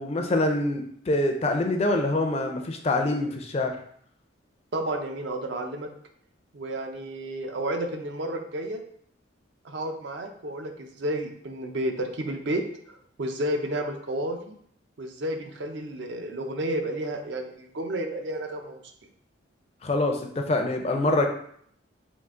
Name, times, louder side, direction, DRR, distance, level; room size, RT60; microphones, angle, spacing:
voice 1, 0.0-3.8 19.8-21.3, left 2 dB, 30° left, 4 dB, 0.4 m, -25 dB
voice 2, 4.7-5.9 6.5-8.8 9.6-12.6 12.9-14.6 15.0-18.8, right 1 dB, 60° right, 5 dB, 0.5 m, -31 dB
3.7 x 2.5 x 3.5 m, 0.65 s
head